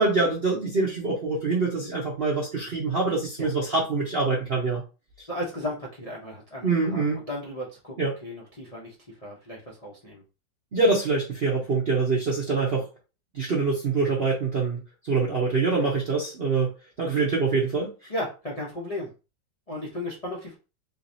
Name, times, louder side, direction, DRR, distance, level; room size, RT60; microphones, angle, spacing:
voice 1, 0.0-4.8 5.2-5.3 6.6-7.2 8.0-8.1 10.7-12.9 13.3-14.8 15.1-16.7 17.0-18.1, right 3 dB, 55° right, -3 dB, 0.6 m, -25 dB
voice 2, 5.3-7.9 8.2-8.9 9.2-10.2 18.1-19.1 19.7-20.6, left 1 dB, 45° left, -4 dB, 0.4 m, -35 dB
3.9 x 2.9 x 2.6 m, 0.31 s
omnidirectional pair, 2.1 m